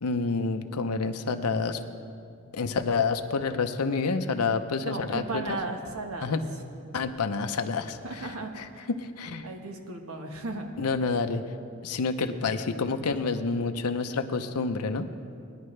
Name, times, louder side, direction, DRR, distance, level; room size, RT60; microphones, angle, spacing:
voice 1, 0.0-1.8 2.5-5.6 6.2-6.4 6.9-9.5 10.8-11.5 11.8-15.1, left 4 dB, 90° left, 7 dB, 0.7 m, -28 dB
voice 2, 4.8-6.3 8.0-8.9 9.4-10.7, right 2 dB, 70° right, 3 dB, 1.2 m, -35 dB
19.0 x 10.0 x 3.3 m, 2.3 s
head